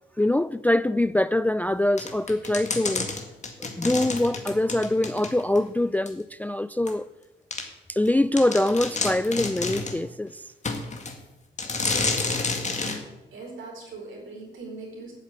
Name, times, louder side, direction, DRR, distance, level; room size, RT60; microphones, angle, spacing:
voice 1, 0.2-3.1 3.8-7.1 7.9-10.4, left 1 dB, 10° left, 0.3 m, -24 dB
sound 1, 2.0-5.6 6.1-6.2 6.9-7.0 7.5-7.7 8.1-8.2 8.4-10.0 10.6-11.2 11.6-13.0, left 3 dB, 35° left, 2.0 m, -29 dB
voice 2, 13.3-15.1, right 3 dB, 70° right, 4.6 m, -40 dB
9.3 x 7.4 x 8.5 m
cardioid pair, 75°, 21 cm